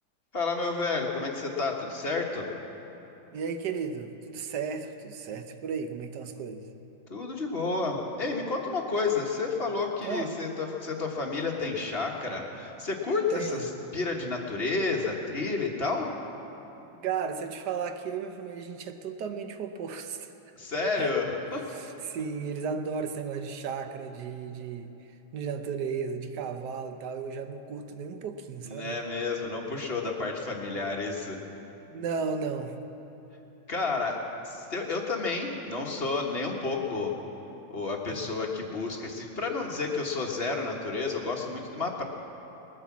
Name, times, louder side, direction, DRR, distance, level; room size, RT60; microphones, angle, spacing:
voice 1, 0.3-2.5 7.1-16.1 20.5-21.6 28.6-31.4 33.7-37.1 37.7-42.0, left 3 dB, 35° left, 0 dB, 1.3 m, -30 dB
voice 2, 3.3-6.7 10.0-10.3 13.3-13.7 17.0-20.3 21.0-21.1 21.7-24.9 25.3-29.0 31.9-32.8 38.1-38.3, right 6 dB, 60° right, 7 dB, 1.2 m, -34 dB
20.5 x 9.8 x 7.3 m, 3.0 s
omnidirectional pair, 2.4 m